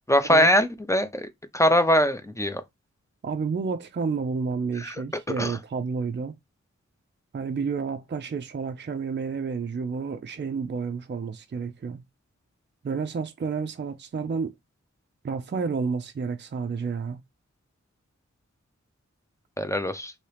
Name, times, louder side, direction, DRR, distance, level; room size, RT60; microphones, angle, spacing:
voice 1, 0.1-1.3 1.5-2.6 4.8-4.9 5.3-5.6 19.6-20.1, equal, 10° left, 0.6 m, -22 dB
voice 2, 3.2-6.3 7.3-12.0 12.8-14.5 15.2-17.2, right 5 dB, 40° right, 0.4 m, -30 dB
2.9 x 2.8 x 3.2 m
wide cardioid pair, 55°, 30 cm